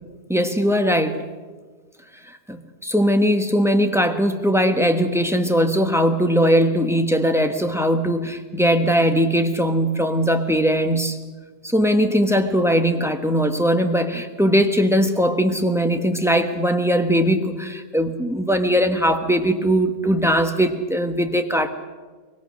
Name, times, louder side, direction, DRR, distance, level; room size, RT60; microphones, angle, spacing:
voice 1, 0.3-1.2 2.5-2.6 2.8-11.2 11.7-21.7, equal, ahead, 6 dB, 1.1 m, -20 dB
23.5 x 22.5 x 6.4 m, 1.4 s
omnidirectional pair, 1.8 m